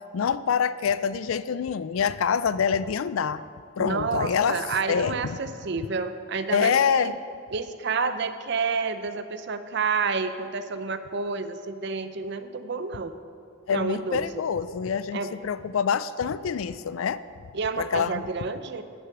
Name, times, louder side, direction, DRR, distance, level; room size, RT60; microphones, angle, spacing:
voice 1, 0.1-3.4 3.8-4.6 4.9-5.4 6.5-7.2 13.7-17.2 17.8-18.3, left 7 dB, 80° left, 15 dB, 0.4 m, -26 dB
voice 2, 3.8-7.1 7.5-13.1 13.7-14.4 15.1-15.3 17.5-18.8, right 4 dB, 55° right, 10 dB, 0.6 m, -29 dB
9.5 x 9.3 x 6.0 m, 2.3 s
head